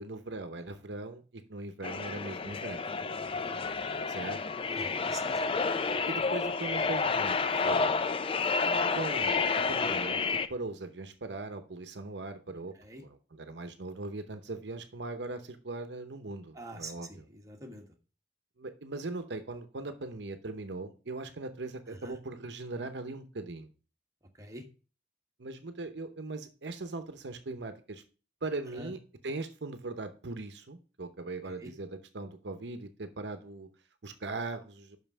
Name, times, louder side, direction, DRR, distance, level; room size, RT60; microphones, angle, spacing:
voice 1, 0.0-2.9 4.1-4.4 6.1-7.4 7.6-8.0 8.9-9.4 9.7-10.2 10.5-17.3 18.6-23.7 25.4-28.0 28.4-33.7 34.0-35.0, right 3 dB, 70° right, 9 dB, 0.8 m, -40 dB
sound 1, 1.8-10.5, left 4 dB, 30° left, 0.4 m, -30 dB
voice 2, 2.8-3.6 4.7-5.6 12.8-13.0 16.5-17.8 21.9-22.1 24.4-24.6 28.7-28.9 31.6-31.7, right 1 dB, 20° right, 2 dB, 1.3 m, -46 dB
6.0 x 5.5 x 6.0 m, 0.36 s
head